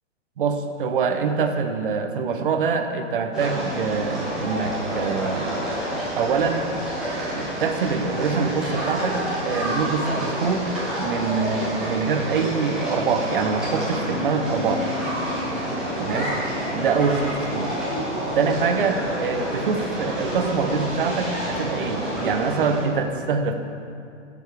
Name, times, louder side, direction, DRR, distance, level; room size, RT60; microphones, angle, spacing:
voice 1, 0.4-5.5 6.1-6.6 7.3-10.7 11.0-14.9 16.0-16.3 16.7-17.7 18.3-23.5, right 5 dB, 45° right, 7 dB, 0.8 m, -24 dB
sound 1, 3.3-22.8, equal, ahead, 1.5 m, -28 dB
10.5 x 7.1 x 4.7 m, 2.5 s
hypercardioid pair, 165°, 37 cm